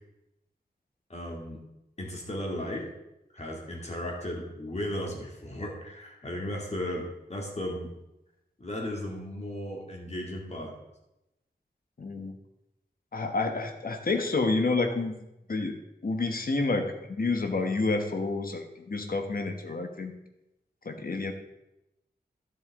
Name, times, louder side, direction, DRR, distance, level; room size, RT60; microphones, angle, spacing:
voice 1, 1.1-1.6 2.0-2.9 3.3-7.9 8.6-10.7, left 1 dB, 40° left, -1 dB, 2.5 m, -35 dB
voice 2, 12.0-12.3 13.1-15.1 15.5-15.8 16.0-20.1 20.8-21.3, left 3 dB, 55° left, 5 dB, 1.3 m, -29 dB
12.0 x 7.9 x 3.7 m, 0.90 s
wide cardioid pair, 80°, 18 cm